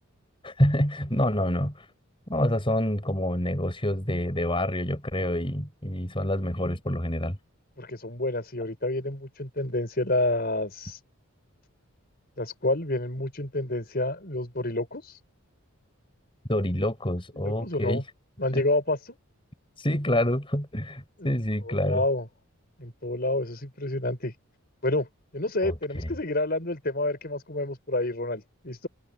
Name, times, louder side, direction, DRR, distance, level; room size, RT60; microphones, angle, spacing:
voice 1, 0.4-1.9 2.3-7.4 16.5-18.0 18.5-18.6 19.8-22.0 25.6-25.7 26.0-26.1, left 1 dB, 25° left, 6.9 m, -27 dB
voice 2, 7.8-11.0 12.4-15.2 17.4-18.0 18.4-19.0 21.2-21.3 21.7-22.3 22.8-24.3 24.8-25.1 25.3-28.9, left 2 dB, 45° left, 5.2 m, -29 dB
head